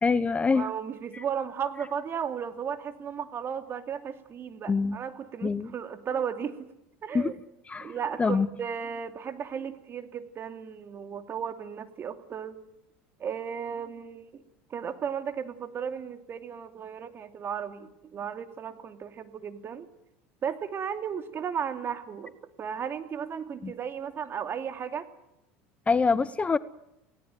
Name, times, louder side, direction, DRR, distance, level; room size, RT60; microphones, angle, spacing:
voice 1, 0.0-0.7 1.1-1.2 4.7-5.0 5.4-5.7 7.1-7.3 7.7-7.9 8.2-8.5 23.6-23.7 25.9-26.6, left 4 dB, 20° left, 16 dB, 0.9 m, -25 dB
voice 2, 0.5-6.7 7.0-7.4 7.8-12.6 13.2-14.4 14.7-19.9 20.4-22.3 22.6-25.0, right 7 dB, 40° right, 7 dB, 2.9 m, -35 dB
28.0 x 18.5 x 9.4 m, 0.87 s
hypercardioid pair, 90°, 6 cm